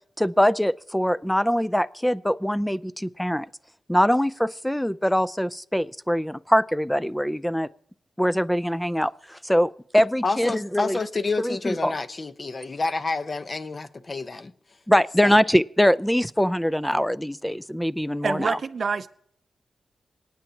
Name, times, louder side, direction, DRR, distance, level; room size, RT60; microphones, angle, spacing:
voice 1, 0.2-3.5 3.9-7.7 8.2-11.0 11.4-11.9 14.9-18.6, equal, 5° left, 0.4 m, -23 dB
voice 2, 10.2-14.5 15.2-15.4, left 3 dB, 40° left, 0.9 m, -29 dB
voice 3, 18.2-19.1, right 5 dB, 60° right, 0.5 m, -26 dB
26.0 x 9.2 x 2.8 m
cardioid pair, 85°, 0 cm